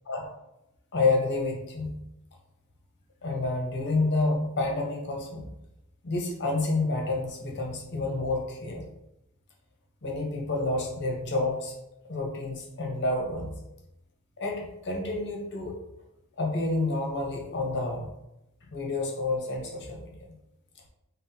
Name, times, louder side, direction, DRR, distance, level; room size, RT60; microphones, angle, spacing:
voice 1, 0.9-1.9 3.2-5.5 6.0-8.9 10.0-11.7 12.1-13.5 14.4-15.8 16.4-18.1 18.7-20.3, left 2 dB, 50° left, 1 dB, 0.7 m, -29 dB
5.3 x 2.1 x 2.7 m, 0.89 s
head